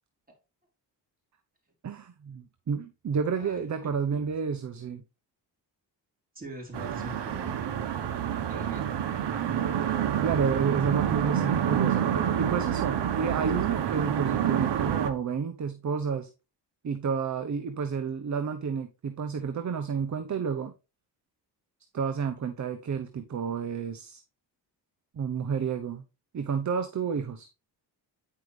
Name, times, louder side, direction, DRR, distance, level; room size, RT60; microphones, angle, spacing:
voice 1, 1.8-5.0 10.2-12.1 12.4-16.3 16.8-20.7 21.9-24.2 25.1-26.0 26.3-27.5, right 6 dB, 40° right, 0.9 m, -30 dB
voice 2, 3.3-4.3 6.3-7.5 8.5-8.9, right 1 dB, 20° right, 4.7 m, -43 dB
sound 1, 6.7-15.1, right 9 dB, 70° right, 1.2 m, -28 dB
9.4 x 5.7 x 3.3 m
cardioid pair, 90°, 44 cm